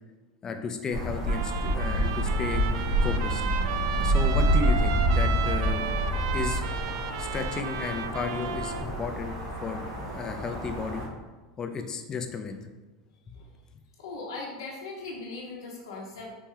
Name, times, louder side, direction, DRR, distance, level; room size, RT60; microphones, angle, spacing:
voice 1, 0.4-2.6 3.0-3.4 3.9-5.8 6.3-6.6 7.2-9.4 9.6-11.1 11.6-12.7, left 5 dB, 30° left, 6 dB, 0.5 m, -33 dB
sound 1, 0.9-11.1, right 1 dB, 90° right, 1.3 m, -27 dB
Trumpet, 1.3-8.9, right 9 dB, 70° right, 0.3 m, -34 dB
voice 2, 14.0-16.3, left 3 dB, 80° left, -3 dB, 0.9 m, -39 dB
4.2 x 3.1 x 3.7 m, 1.2 s
hypercardioid pair, 100°, 2 cm